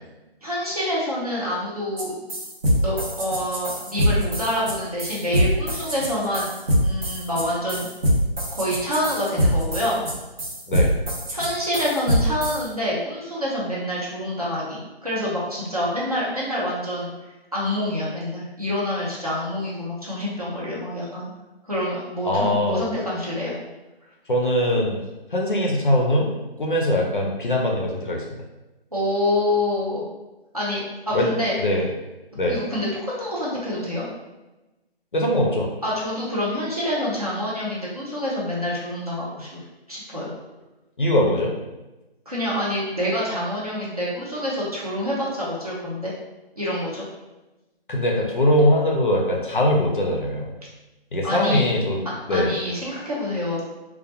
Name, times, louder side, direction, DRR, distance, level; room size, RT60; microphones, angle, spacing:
voice 1, 0.4-2.4 2.7-6.5 6.8-7.9 8.5-10.1 11.3-17.1 17.5-21.3 21.6-23.6 28.9-30.0 30.5-30.8 31.1-31.5 32.4-34.0 35.8-39.6 39.9-40.3 42.3-46.1 46.6-47.0 51.2-51.7 52.3-53.6, left 1 dB, 40° right, -7 dB, 0.6 m, -27 dB
sound 1, 2.0-2.1 2.3-12.6, equal, 70° right, 0.8 m, -23 dB
voice 2, 22.2-22.8 24.3-25.0 25.3-28.2 31.1-31.3 31.6-31.9 32.4-32.6 35.1-35.7 41.0-41.5 47.9-50.5 51.1-52.0 52.3-52.5, left 1 dB, 55° left, -1 dB, 0.5 m, -21 dB
2.2 x 2.1 x 2.7 m, 1.0 s
figure-of-eight pair, 180°, 31 cm